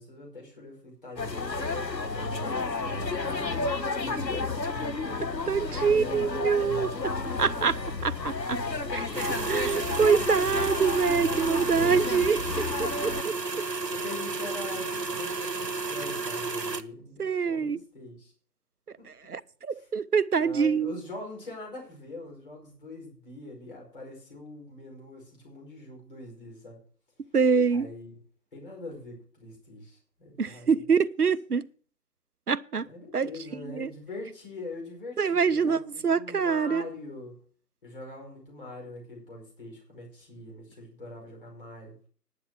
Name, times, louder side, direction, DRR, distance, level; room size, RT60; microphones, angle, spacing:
voice 1, 0.0-4.5 5.6-6.2 8.0-8.8 9.9-10.5 11.7-12.0 13.6-18.3 19.7-19.9 20.4-26.8 27.7-28.2 28.5-30.7 32.8-37.4 37.8-41.9, left 2 dB, 30° left, 5.0 m, -43 dB
sound 1, 1.2-13.2, left 3 dB, 85° left, 1.3 m, -31 dB
voice 2, 5.5-7.1 7.4-8.6 8.9-13.3 17.2-17.8 19.3-21.0 27.3-27.9 30.4-31.6 32.5-32.9 33.1-33.3 33.7-33.9 35.2-36.8, right 6 dB, 65° right, 0.7 m, -25 dB
sound 2, 9.1-16.8, right 3 dB, 85° right, 1.3 m, -32 dB
10.5 x 9.4 x 6.1 m
figure-of-eight pair, 160°, 49 cm